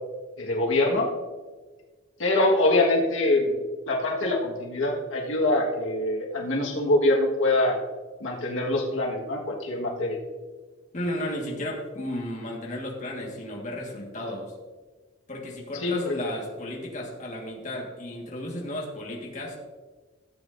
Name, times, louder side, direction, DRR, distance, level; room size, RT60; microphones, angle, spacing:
voice 1, 0.4-1.1 2.2-3.6 3.9-7.8 8.2-10.2 15.8-16.1, left 2 dB, 80° left, -1 dB, 1.6 m, -24 dB
voice 2, 10.9-14.5 15.3-19.6, left 1 dB, 40° left, -2 dB, 1.6 m, -34 dB
15.0 x 8.0 x 2.6 m, 1.3 s
head